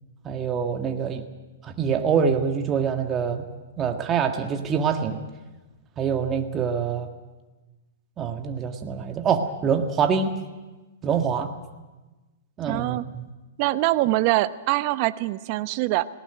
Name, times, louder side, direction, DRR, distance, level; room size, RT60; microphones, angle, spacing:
voice 1, 0.2-1.2 1.6-3.4 3.8-5.2 6.0-7.1 8.2-10.4 11.0-11.5 12.6-13.3, right 6 dB, 25° right, 4 dB, 1.6 m, -25 dB
voice 2, 12.7-13.0 13.6-16.0, right 17 dB, 45° right, 13 dB, 0.9 m, -23 dB
19.0 x 18.0 x 9.2 m, 1.1 s
hypercardioid pair, 125°, 0 cm